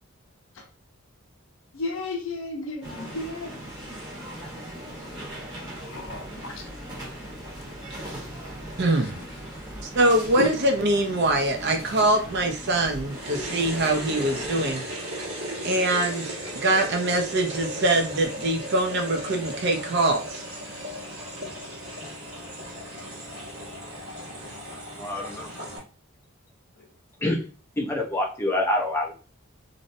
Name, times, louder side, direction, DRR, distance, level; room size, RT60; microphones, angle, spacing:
voice 1, 1.7-3.5 5.8-6.3 10.4-10.5, left 1 dB, 65° left, 3 dB, 0.5 m, -31 dB
sound 1, 2.8-14.7, right 1 dB, 20° right, 0.9 m, -39 dB
voice 2, 8.8-9.2 9.8-15.0 15.6-20.4, right 1 dB, 50° right, 3 dB, 0.5 m, -23 dB
sound 2, 13.1-25.8, equal, 75° right, 1.1 m, -36 dB
voice 3, 25.0-25.5 27.2-27.4 27.8-29.1, left 1 dB, 10° left, 0 dB, 0.4 m, -26 dB
2.6 x 2.0 x 2.6 m, 0.36 s
head